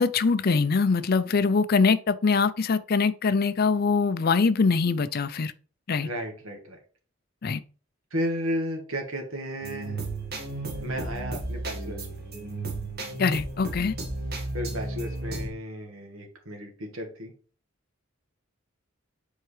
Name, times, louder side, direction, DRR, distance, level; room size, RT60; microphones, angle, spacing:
voice 1, 0.0-5.5 5.9-6.1 7.4-7.6 13.2-13.9, left 4 dB, 50° left, 0.5 m, -23 dB
voice 2, 6.0-6.8 8.1-10.0 10.8-12.1 14.5-17.3, equal, 85° right, 1.5 m, -33 dB
sound 1, 9.6-15.5, right 2 dB, 50° right, 1.7 m, -33 dB
7.5 x 4.6 x 3.2 m
head